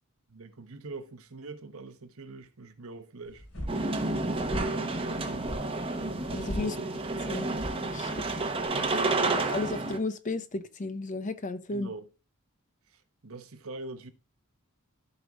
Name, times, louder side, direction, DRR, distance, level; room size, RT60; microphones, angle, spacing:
voice 1, 0.3-3.4 4.1-5.5 6.5-7.0 8.7-9.1 11.7-12.1 12.9-14.1, right 3 dB, 65° right, 1.0 m, -44 dB
sound 1, 3.3-8.7, equal, 70° left, 5.1 m, -40 dB
sound 2, 3.7-10.0, right 2 dB, 25° right, 1.0 m, -30 dB
voice 2, 6.3-6.8 7.3-7.5 7.9-8.1 9.5-11.9, left 2 dB, 35° left, 0.6 m, -33 dB
15.0 x 5.3 x 2.4 m
head